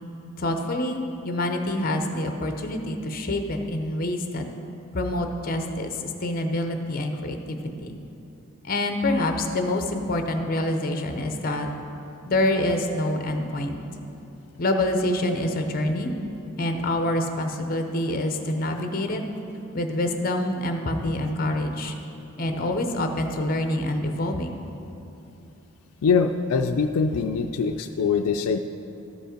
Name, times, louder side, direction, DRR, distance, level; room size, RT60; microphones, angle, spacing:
voice 1, 0.4-4.5 4.9-7.9 8.6-11.7 12.2-13.8 14.6-16.1 16.6-19.2 19.7-21.9 22.4-24.5, left 1 dB, 40° left, 5 dB, 0.7 m, -26 dB
voice 2, 26.0-28.6, left 5 dB, 80° left, 6 dB, 0.4 m, -23 dB
13.0 x 5.2 x 5.1 m, 2.9 s
head